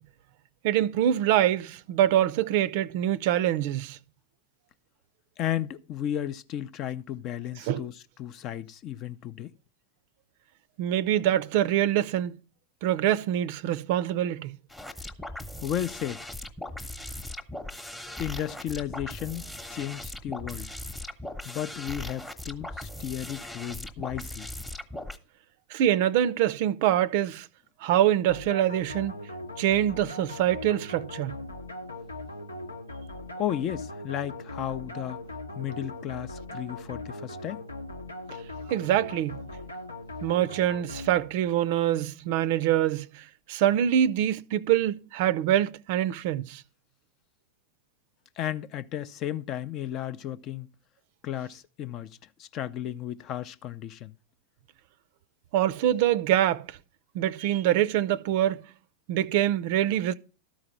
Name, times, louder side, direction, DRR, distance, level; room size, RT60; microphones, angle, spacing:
voice 1, 0.6-4.0 7.7-7.8 10.8-12.3 12.8-14.6 25.7-27.5 27.8-29.1 29.6-31.4 38.7-39.4 40.2-43.2 43.5-46.6 55.5-56.7 57.1-58.6 59.1-60.1, right 11 dB, 50° right, 0.5 m, -25 dB
voice 2, 5.4-9.5 15.6-16.2 18.2-20.7 21.4-24.5 33.4-35.2 35.5-37.6 48.4-50.7 51.2-54.1, left 11 dB, 35° left, 0.5 m, -34 dB
sound 1, 14.7-25.2, left 1 dB, 5° left, 1.0 m, -39 dB
sound 2, 28.3-41.6, left 2 dB, 80° left, 0.9 m, -40 dB
13.0 x 4.8 x 5.6 m
figure-of-eight pair, 90°, 0 cm